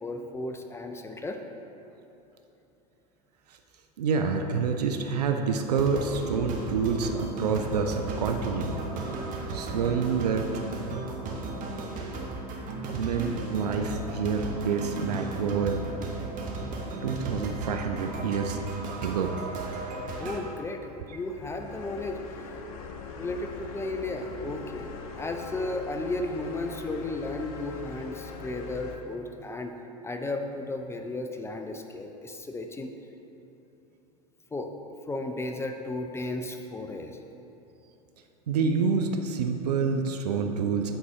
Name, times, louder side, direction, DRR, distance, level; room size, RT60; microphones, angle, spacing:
voice 1, 0.0-1.4 20.2-22.2 23.2-24.9 25.2-29.7 30.0-32.9 34.5-34.7 35.1-37.2, left 2 dB, 15° left, 5 dB, 0.4 m, -34 dB
voice 2, 4.0-8.7 9.5-10.5 12.8-15.8 17.0-18.6 19.0-19.4 38.5-40.9, right 5 dB, 80° right, 5 dB, 0.5 m, -27 dB
sound 1, 5.8-20.4, right 3 dB, 40° right, 1.0 m, -35 dB
sound 2, 20.9-29.0, left 3 dB, 65° left, 0.7 m, -41 dB
7.9 x 4.0 x 4.8 m, 3.0 s
hypercardioid pair, 90°, 20 cm